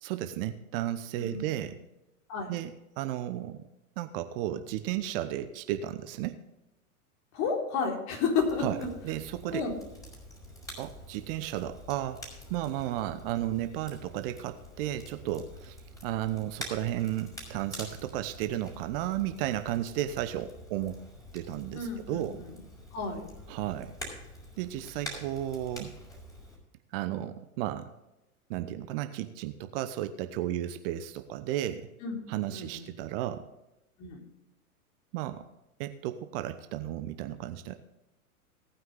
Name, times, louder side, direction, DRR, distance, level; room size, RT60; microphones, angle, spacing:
voice 1, 0.0-1.8 2.5-3.6 4.0-6.4 8.6-9.7 10.8-12.2 12.5-15.8 16.0-21.0 21.3-22.4 23.5-23.9 24.6-25.9 26.9-27.9 28.5-31.9 32.3-33.5 35.1-35.5 35.8-37.8, right 12 dB, 40° right, 10 dB, 0.9 m, -33 dB
voice 2, 7.3-8.9 9.5-9.8 21.7-22.5 22.9-23.3 32.0-32.2 32.5-32.8 34.0-34.2, left 5 dB, 40° left, 0 dB, 3.8 m, -31 dB
Crackle, 8.3-26.6, equal, 10° left, 4.8 m, -47 dB
18.0 x 9.3 x 3.4 m, 0.95 s
figure-of-eight pair, 100°, 44 cm